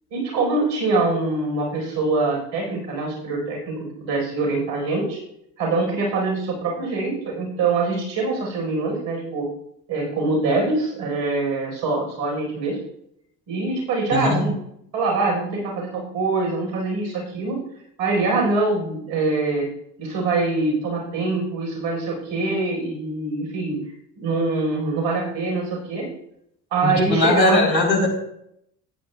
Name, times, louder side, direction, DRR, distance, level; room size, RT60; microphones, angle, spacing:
voice 1, 0.1-5.2 5.6-9.5 9.9-12.8 13.5-14.6 14.9-17.6 18.0-19.7 20.0-23.8 24.2-26.1 26.7-27.7, right 3 dB, 60° right, -1 dB, 4.6 m, -24 dB
voice 2, 14.1-14.4 26.8-28.1, left 2 dB, 90° left, 1 dB, 1.5 m, -19 dB
14.0 x 9.5 x 2.3 m, 0.74 s
figure-of-eight pair, 55°, 49 cm